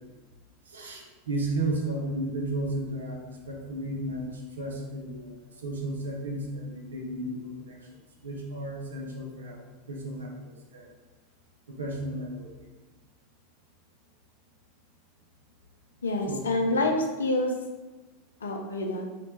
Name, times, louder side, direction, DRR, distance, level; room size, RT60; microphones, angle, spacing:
voice 1, 0.7-7.7 8.2-9.6 9.9-10.9 11.7-12.5 16.3-16.6, right 1 dB, 80° right, 0 dB, 0.5 m, -34 dB
voice 2, 16.0-17.5 18.4-19.1, left 2 dB, 85° left, 3 dB, 0.4 m, -27 dB
2.8 x 2.1 x 2.8 m, 1.2 s
hypercardioid pair, 90°, 0 cm